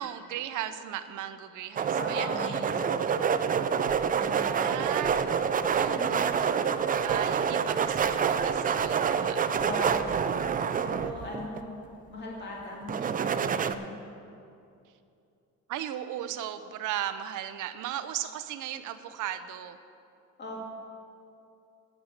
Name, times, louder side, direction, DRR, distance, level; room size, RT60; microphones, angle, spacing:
voice 1, 0.0-2.7 3.1-3.5 4.1-6.5 7.0-9.5 13.3-13.4 15.7-19.8, right 11 dB, 70° right, 11 dB, 0.7 m, -37 dB
sound 1, 1.8-11.6 12.9-13.7, right 7 dB, 25° right, 0.4 m, -27 dB
voice 2, 2.0-3.0 4.1-5.2 5.7-6.2 9.6-10.2 10.8-11.8 12.1-13.9 20.4-20.6, left 1 dB, 35° left, -3 dB, 2.6 m, -39 dB
8.5 x 8.0 x 7.8 m, 2.6 s
cardioid pair, 110°, 31 cm